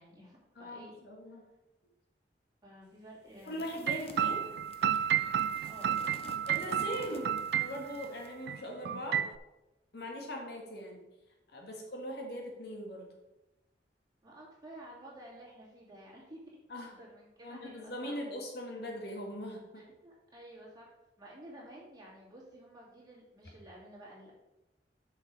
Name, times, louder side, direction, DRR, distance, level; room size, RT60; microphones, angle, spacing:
voice 1, 0.0-1.0 2.6-3.6 5.7-6.0 11.7-11.9 14.2-16.4 16.8-18.2 19.7-20.9 21.2-24.3, right 1 dB, 25° right, -6 dB, 2.7 m, -52 dB
voice 2, 0.5-1.5 3.5-4.5 6.5-9.2 9.9-11.0 11.5-13.1 16.7-17.0 17.4-19.9, equal, 65° left, 1 dB, 1.6 m, -41 dB
sound 1, 3.4-8.4, left 3 dB, 35° left, 0.7 m, -53 dB
sound 2, 3.9-8.1 8.5-8.6 8.8-9.4, right 9 dB, 65° right, 0.3 m, -31 dB
7.0 x 5.7 x 4.7 m, 1.0 s
head